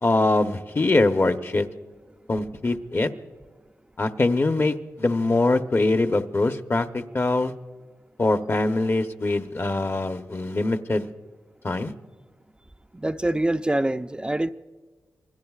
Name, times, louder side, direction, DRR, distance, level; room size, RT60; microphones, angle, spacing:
voice 1, 0.0-1.7 2.3-3.1 4.0-6.9 7.1-7.5 8.2-11.1 11.6-11.9, left 2 dB, 40° left, 0.9 m, -23 dB
voice 2, 13.0-14.5, right 1 dB, 15° right, 0.5 m, -24 dB
27.0 x 21.0 x 2.4 m
cardioid pair, 55°, 6 cm